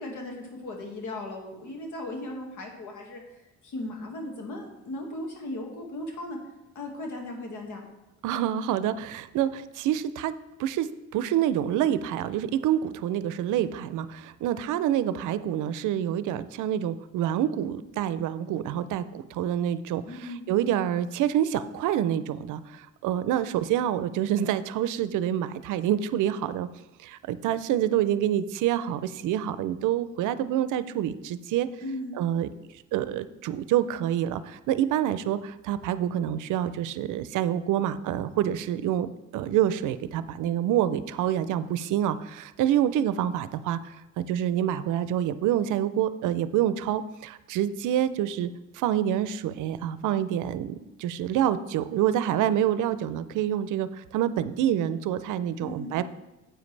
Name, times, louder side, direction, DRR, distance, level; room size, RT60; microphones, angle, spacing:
voice 1, 0.0-3.2 3.6-6.4 6.8-7.8 20.1-20.5 31.8-32.2 55.6-55.9, left 1 dB, 75° left, 2 dB, 1.9 m, -37 dB
voice 2, 8.2-10.3 10.6-10.9 11.1-20.0 20.5-26.7 27.0-31.7 32.1-32.5 32.9-48.5 48.7-56.0, right 11 dB, 85° right, 14 dB, 0.5 m, -27 dB
9.4 x 7.7 x 3.3 m, 0.99 s
cardioid pair, 90°, 30 cm